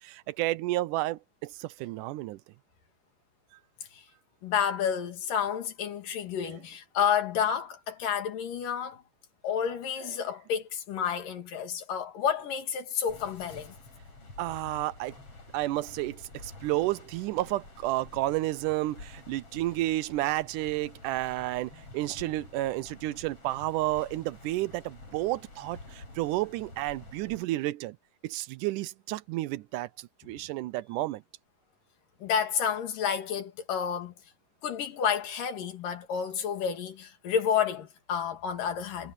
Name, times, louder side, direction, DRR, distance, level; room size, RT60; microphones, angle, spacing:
voice 1, 0.0-2.4 14.4-15.2 15.5-28.0 28.2-31.2, right 17 dB, 85° right, 2.1 m, -31 dB
voice 2, 4.4-9.0 9.4-13.7 32.2-34.1 34.6-39.1, left 8 dB, 85° left, 3.9 m, -30 dB
sound 1, 13.1-27.4, left 2 dB, 45° left, 7.9 m, -49 dB
omnidirectional pair, 3.7 m